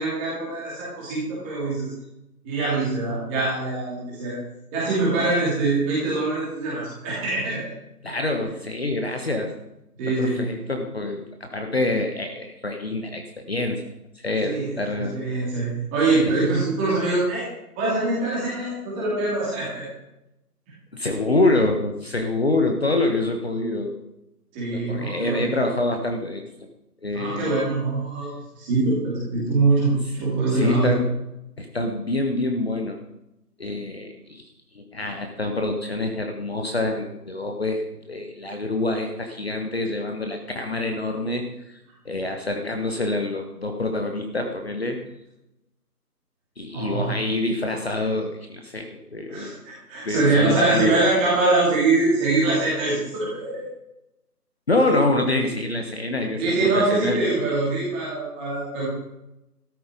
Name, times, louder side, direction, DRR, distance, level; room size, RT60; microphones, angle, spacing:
voice 1, 0.0-1.9 2.4-4.4 4.7-7.7 10.0-10.4 14.4-17.5 17.8-19.9 24.5-25.5 27.1-28.3 28.6-31.0 46.7-47.1 49.3-53.6 56.4-58.9, right 3 dB, 5° right, -6 dB, 2.7 m, -23 dB
voice 2, 8.0-9.5 10.1-13.2 13.5-13.8 14.1-15.2 16.3-16.4 20.9-24.0 24.7-26.4 27.0-27.6 29.9-30.0 30.5-31.1 31.6-33.0 33.6-34.4 34.7-41.8 42.0-45.0 46.6-49.5 50.0-51.0 54.7-57.2, left 2 dB, 40° left, 4 dB, 1.4 m, -26 dB
13.0 x 11.5 x 5.2 m, 0.88 s
figure-of-eight pair, 165°, 47 cm